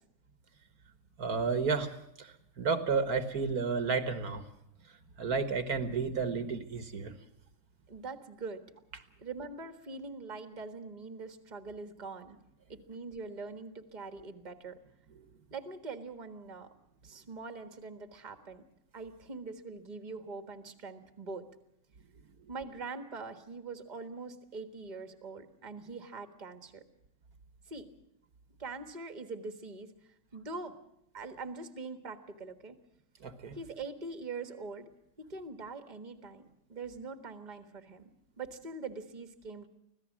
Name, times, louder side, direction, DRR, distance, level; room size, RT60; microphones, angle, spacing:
voice 1, 1.2-4.5 5.2-7.1 33.2-33.6, right 5 dB, 65° right, 10 dB, 1.8 m, -32 dB
voice 2, 7.9-8.6 9.2-12.4 12.7-14.8 15.5-16.7 17.0-18.6 18.9-21.5 22.5-26.8 27.7-27.9 28.6-29.9 30.3-30.8 31.1-32.8 33.5-34.9 35.2-38.1 38.4-39.7, right 3 dB, 30° right, 9 dB, 1.6 m, -43 dB
25.0 x 16.5 x 7.4 m, 0.79 s
omnidirectional pair, 1.8 m